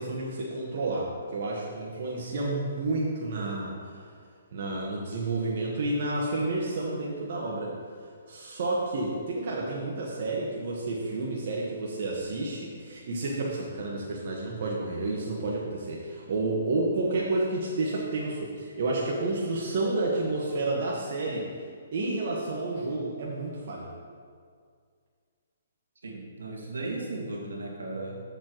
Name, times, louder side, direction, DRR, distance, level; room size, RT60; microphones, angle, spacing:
voice 1, 0.0-4.0 4.5-7.7 8.3-21.5 21.9-23.9, right 2 dB, 55° right, -3 dB, 1.4 m, -30 dB
voice 2, 26.0-28.2, right 2 dB, 85° right, -2 dB, 2.1 m, -36 dB
12.0 x 7.2 x 3.1 m, 2.1 s
hypercardioid pair, 140°, 0 cm